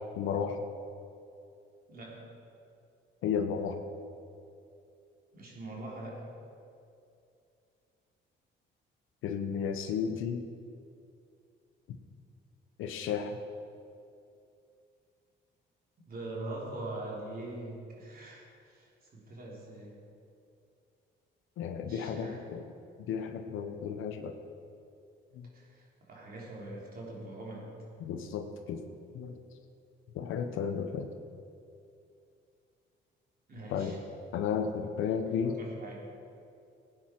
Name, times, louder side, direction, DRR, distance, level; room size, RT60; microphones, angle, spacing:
voice 1, 0.2-0.6 3.2-3.8 9.2-10.5 11.9-12.0 12.8-13.4 21.6-22.6 23.1-24.3 25.3-25.5 28.0-28.9 29.1-29.4 30.1-31.1 33.7-33.9 34.3-35.6, left 7 dB, 90° left, 6 dB, 0.9 m, -33 dB
voice 2, 1.9-2.3 5.3-6.3 16.1-20.0 21.9-22.4 25.5-27.8 33.5-34.0 34.8-34.9 35.4-36.1, right 2 dB, 50° right, -3 dB, 3.6 m, -43 dB
17.0 x 9.5 x 4.6 m, 2.5 s
cardioid pair, 90°, 20 cm